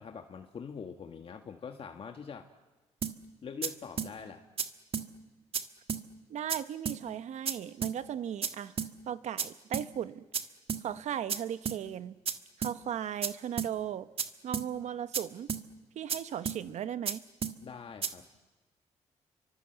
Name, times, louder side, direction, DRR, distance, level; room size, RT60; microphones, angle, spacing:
voice 1, 0.0-2.5 3.4-4.4 17.6-18.3, left 6 dB, 50° left, 4 dB, 1.6 m, -44 dB
sound 1, 3.0-3.2 3.6-3.7 4.0-4.1 4.6-4.7 4.9-5.1 5.5-5.6 5.9-6.0 6.5-6.6 6.9-7.0 7.5-7.6 7.8-8.0 8.4-8.5 8.8-8.9 9.4-9.5 9.7-9.9 10.3-10.4 10.7-10.8 11.3-11.4 11.7-11.8 12.3-12.4 12.6-12.8 13.2-13.3 13.6-13.7 14.2-14.3 14.5-14.7 15.1-15.2 15.5-15.6 16.1-16.2 16.5-16.6 17.1-17.2 17.4-17.6 18.0-18.1, right 7 dB, 50° right, 1.6 m, -32 dB
voice 2, 6.3-8.7 9.1-10.2 10.8-12.1 12.6-14.1 14.4-15.5 15.9-17.2, right 9 dB, 75° right, 13 dB, 1.0 m, -37 dB
30.0 x 24.0 x 8.0 m, 1.2 s
cardioid pair, 100°, 12 cm